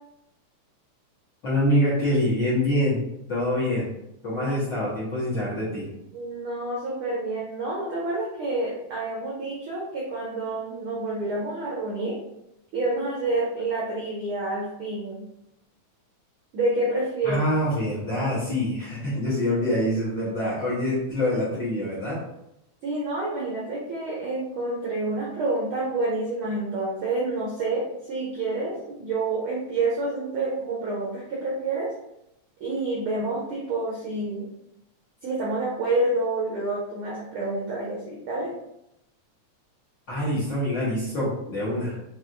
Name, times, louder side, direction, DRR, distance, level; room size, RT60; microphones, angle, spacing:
voice 1, 1.4-3.0 3.3-3.9 4.2-5.9 17.2-22.2 40.1-42.0, left 1 dB, 60° left, -9 dB, 1.2 m, -25 dB
voice 2, 6.1-12.1 12.7-15.3 16.5-17.4 22.8-31.9 32.6-34.5 35.2-38.5, right 2 dB, 85° right, -4 dB, 1.1 m, -28 dB
6.0 x 2.4 x 2.5 m, 0.83 s
omnidirectional pair, 3.4 m